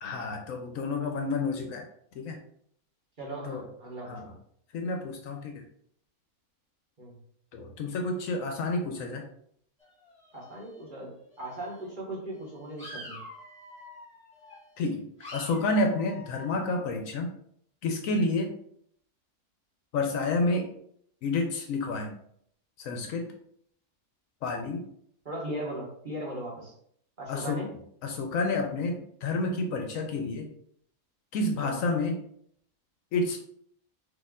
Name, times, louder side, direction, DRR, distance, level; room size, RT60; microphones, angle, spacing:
voice 1, 0.0-1.9 2.1-2.4 3.4-3.7 4.0-4.4 4.7-5.6 7.5-9.2 14.8-15.0 15.3-17.3 17.8-18.6 19.9-20.7 21.2-22.2 22.8-23.3 24.4-24.9 27.3-27.6 28.0-30.5 31.3-32.2 33.1-33.4, left 2 dB, 70° left, 3 dB, 0.9 m, -29 dB
voice 2, 3.2-4.3 7.0-7.2 10.3-11.1 11.4-13.2 25.2-26.7 27.2-27.7 31.6-31.8, right 1 dB, 35° right, -4 dB, 1.2 m, -38 dB
sound 1, 9.8-11.0 11.3-11.9 12.4-14.9 15.2-16.5, left 1 dB, 15° left, 1.7 m, -47 dB
4.2 x 2.7 x 3.6 m, 0.68 s
omnidirectional pair, 1.5 m